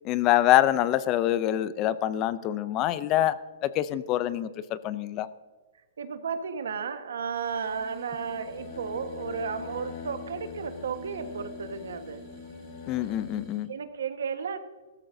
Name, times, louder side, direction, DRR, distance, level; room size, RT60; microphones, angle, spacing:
voice 1, 0.0-3.4 3.6-5.3 12.9-13.7, left 13 dB, 25° left, 15 dB, 0.4 m, -25 dB
voice 2, 6.0-12.2 13.7-14.6, right 6 dB, 85° right, 8 dB, 1.3 m, -33 dB
sound 1, 7.3-13.8, right 10 dB, 25° right, 1.2 m, -51 dB
sound 2, 8.2-13.5, left 8 dB, 45° left, 1.2 m, -43 dB
16.5 x 13.5 x 2.7 m, 1.3 s
hypercardioid pair, 165°, 0 cm